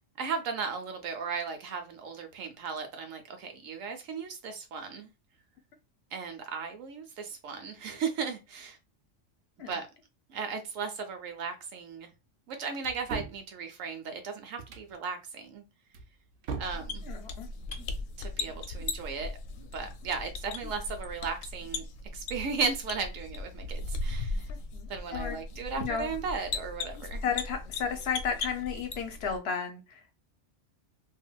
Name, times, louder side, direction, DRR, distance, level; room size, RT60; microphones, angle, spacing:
voice 1, 0.2-5.1 6.1-8.8 9.7-9.9 10.3-12.1 12.5-15.6 16.6-17.0 18.2-19.3 19.7-21.8 22.1-24.5 24.9-27.2, right 5 dB, 85° right, 1.2 m, -36 dB
sound 1, 12.8-13.4 14.6-14.9 15.9-16.8 17.5-17.9, right 4 dB, 60° right, 0.7 m, -39 dB
sound 2, 16.6-29.4, left 3 dB, 85° left, 1.0 m, -38 dB
voice 2, 17.0-17.5 24.7-25.4 25.8-26.1 27.2-30.0, left 6 dB, 60° left, 0.8 m, -33 dB
2.9 x 2.6 x 2.2 m
omnidirectional pair, 1.3 m